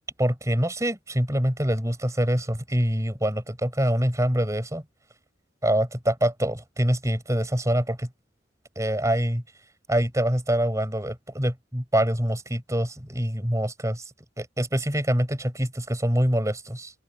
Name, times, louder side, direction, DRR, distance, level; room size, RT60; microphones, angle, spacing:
voice 1, 0.2-4.8 5.6-8.1 8.8-9.4 9.9-14.0 14.4-16.9, equal, 15° right, 7.6 m, -25 dB
open air
head